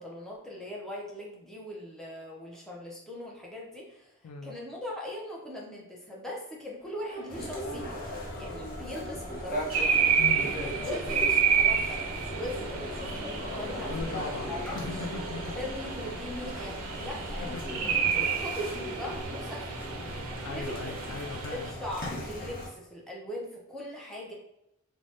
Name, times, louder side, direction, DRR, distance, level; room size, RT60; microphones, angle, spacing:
voice 1, 0.0-4.2 4.4-8.0 8.3-9.8 10.8-12.0 12.4-15.0 15.6-19.7 20.5-21.0 21.5-24.3, left 1 dB, ahead, -3 dB, 0.4 m, -40 dB
voice 2, 4.2-4.6 10.2-11.0 13.9-15.6 17.5-18.2 20.0-21.7, left 4 dB, 80° left, 6 dB, 0.3 m, -39 dB
sound 1, 6.8-15.3, left 2 dB, 25° left, 1.1 m, -49 dB
sound 2, 7.3-22.7, equal, 45° left, 0.7 m, -38 dB
sound 3, 9.7-21.7, right 7 dB, 85° right, 0.4 m, -30 dB
2.5 x 2.1 x 3.3 m, 0.84 s
head